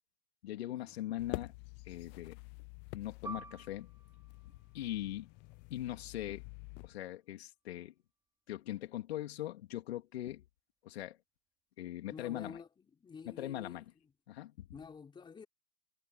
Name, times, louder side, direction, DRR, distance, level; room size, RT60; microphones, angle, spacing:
voice 1, 0.4-1.5 1.9-2.4 2.9-3.9 4.7-5.3 5.7-6.5 6.8-8.0 8.5-10.5 10.8-11.2 11.8-12.6 13.3-13.9 14.3-14.7, left 14 dB, 75° left, 3.5 m, -41 dB
sound 1, 1.2-6.9, left 25 dB, 35° left, 0.6 m, -48 dB
Piano, 3.2-8.3 8.6-8.8 9.6-9.9, right 3 dB, 10° right, 3.0 m, -52 dB
voice 2, 12.1-13.8 14.7-15.5, left 5 dB, 15° left, 4.1 m, -49 dB
supercardioid pair, 135°, 31 cm